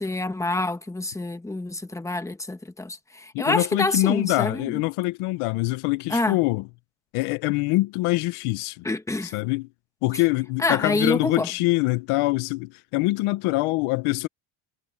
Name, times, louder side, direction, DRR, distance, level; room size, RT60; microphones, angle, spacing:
voice 1, 0.0-4.8 6.1-6.4 8.8-9.3 10.6-11.5, left 2 dB, 5° left, 1.3 m, -27 dB
voice 2, 3.3-6.6 7.1-8.8 9.3-9.7 10.0-14.3, left 21 dB, 85° left, 1.0 m, -24 dB
cardioid pair, 140°, 49 cm